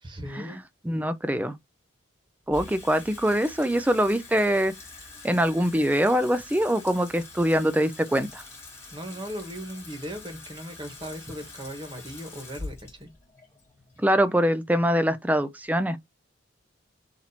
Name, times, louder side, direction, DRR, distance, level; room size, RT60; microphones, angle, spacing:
voice 1, 0.0-0.6 8.9-13.1, equal, 25° right, 1.4 m, -38 dB
voice 2, 0.8-1.6 2.5-4.7 5.2-8.4 14.0-16.0, equal, 10° right, 0.4 m, -23 dB
Water tap faucet / Sink (filling or washing), 2.5-14.9, left 3 dB, 15° left, 1.5 m, -45 dB
4.1 x 2.9 x 4.3 m
head